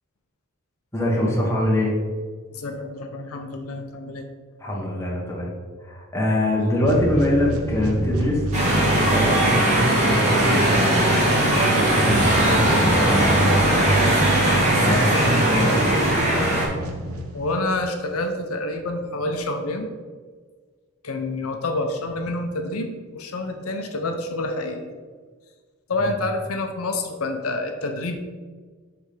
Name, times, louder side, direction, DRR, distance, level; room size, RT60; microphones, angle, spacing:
voice 1, 0.9-1.9 4.6-5.5 5.8-8.4 8.8-11.1 11.8-14.2 14.7-16.0 26.0-26.1, left 1 dB, 15° left, -3 dB, 1.2 m, -24 dB
voice 2, 2.5-4.2 17.3-19.9 21.0-24.9 25.9-28.2, left 2 dB, 80° left, 5 dB, 0.7 m, -28 dB
sound 1, 6.8-17.7, right 1 dB, 85° right, 0.8 m, -28 dB
sound 2, 8.5-16.7, right 1 dB, 35° right, 1.5 m, -19 dB
6.4 x 3.4 x 4.9 m, 1.5 s
head